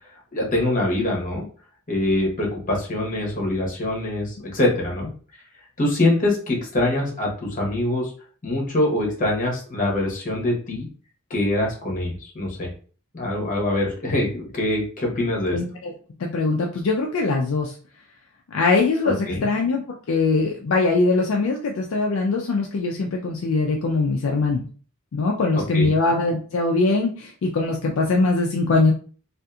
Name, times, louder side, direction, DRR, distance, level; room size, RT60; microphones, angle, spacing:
voice 1, 0.3-1.4 1.9-5.1 5.8-8.1 8.4-10.9 11.3-12.7 13.1-15.6 19.0-19.5 25.7-25.9, left 1 dB, 35° left, -1 dB, 1.0 m, -24 dB
voice 2, 15.5-15.9 16.2-17.7 18.5-24.6 25.1-28.9, left 3 dB, 65° left, 0 dB, 0.4 m, -22 dB
2.7 x 2.5 x 2.3 m, 0.40 s
head